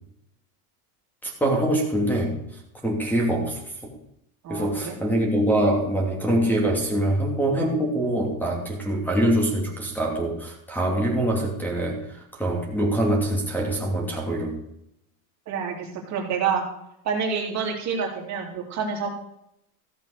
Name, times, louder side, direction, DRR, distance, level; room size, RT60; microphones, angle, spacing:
voice 1, 1.2-2.4 2.8-3.6 4.5-12.0 12.4-14.6, right 1 dB, 5° left, 1 dB, 2.8 m, -24 dB
voice 2, 4.4-4.9 15.5-16.7 17.0-19.1, right 6 dB, 40° right, 1 dB, 2.9 m, -28 dB
14.5 x 7.5 x 6.7 m, 0.76 s
supercardioid pair, 145°, 44 cm